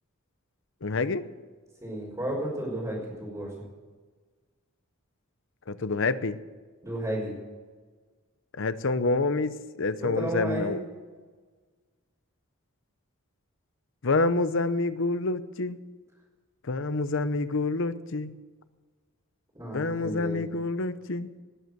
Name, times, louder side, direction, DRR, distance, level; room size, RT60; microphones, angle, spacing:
voice 1, 0.8-1.3 5.7-6.4 8.5-10.8 14.0-15.8 16.6-18.3 19.7-21.3, left 3 dB, 60° left, 13 dB, 0.8 m, -27 dB
voice 2, 1.8-3.5 6.8-7.3 10.0-10.8 19.5-20.4, right 1 dB, 15° right, -9 dB, 4.8 m, -32 dB
19.0 x 8.1 x 7.9 m, 1.4 s
head